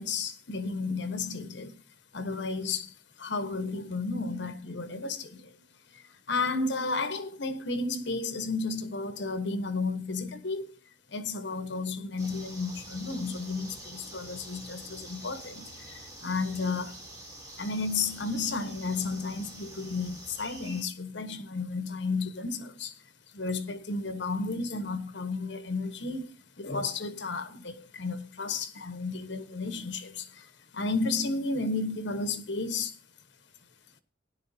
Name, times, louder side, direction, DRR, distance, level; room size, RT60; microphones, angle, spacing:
voice 1, 0.0-1.8 2.1-5.7 5.9-10.8 11.1-17.0 17.6-23.0 23.3-32.9, left 3 dB, 60° left, 1.2 m, -33 dB
sound 1, 12.2-20.8, right 1 dB, 20° right, 3.2 m, -46 dB
16.5 x 10.5 x 2.8 m
head